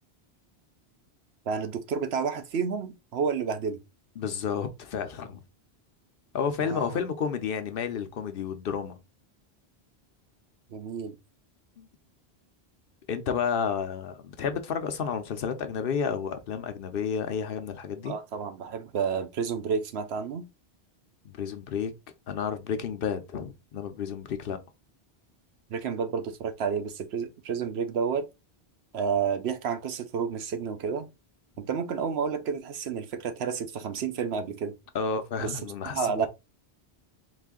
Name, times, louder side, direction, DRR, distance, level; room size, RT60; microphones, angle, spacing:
voice 1, 1.5-3.8 6.6-7.0 10.7-11.2 18.0-20.5 25.7-28.3 28.9-31.1 31.6-34.7 35.4-35.6 35.8-36.3, right 6 dB, 75° right, 1.0 m, -30 dB
voice 2, 4.2-5.4 6.3-9.0 11.8-11.9 13.1-18.1 21.2-21.9 22.3-24.6 34.9-36.3, left 6 dB, 60° left, 0.9 m, -31 dB
4.1 x 2.7 x 3.6 m
omnidirectional pair, 1.1 m